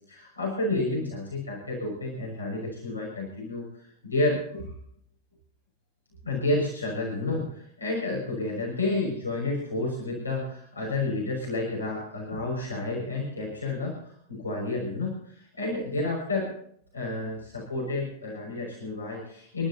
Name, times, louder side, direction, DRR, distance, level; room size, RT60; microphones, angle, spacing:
voice 1, 0.1-4.7 6.2-16.5 16.9-19.7, left 2 dB, 80° left, -3 dB, 5.9 m, -30 dB
30.0 x 12.5 x 2.8 m, 0.65 s
figure-of-eight pair, 90°, 0 cm